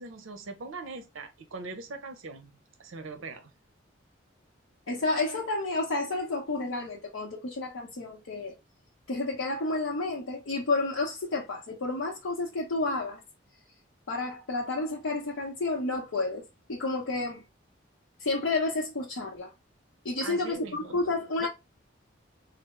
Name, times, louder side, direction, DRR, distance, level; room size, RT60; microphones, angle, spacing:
voice 1, 0.0-3.5 20.2-21.0 21.4-21.5, right 3 dB, 85° right, 0.6 m, -41 dB
voice 2, 4.9-8.5 9.1-13.2 14.1-16.4 16.7-17.4 18.2-19.5 20.0-21.5, left 2 dB, 85° left, 0.7 m, -30 dB
3.3 x 2.0 x 2.9 m
head